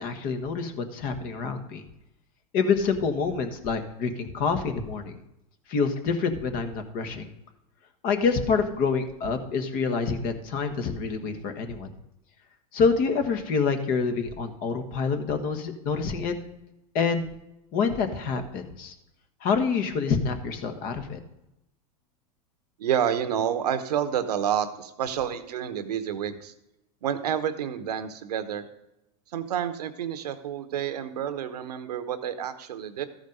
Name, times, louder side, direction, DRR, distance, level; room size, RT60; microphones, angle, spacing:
voice 1, 0.0-1.8 2.5-5.1 5.7-7.3 8.0-11.9 12.7-16.3 16.9-17.3 17.7-18.9 19.4-21.2, left 5 dB, 45° left, 8 dB, 1.4 m, -27 dB
voice 2, 22.8-26.5 27.0-28.6 29.3-33.1, right 9 dB, 85° right, 11 dB, 1.0 m, -29 dB
13.5 x 5.1 x 5.4 m, 0.89 s
hypercardioid pair, 115°, 20 cm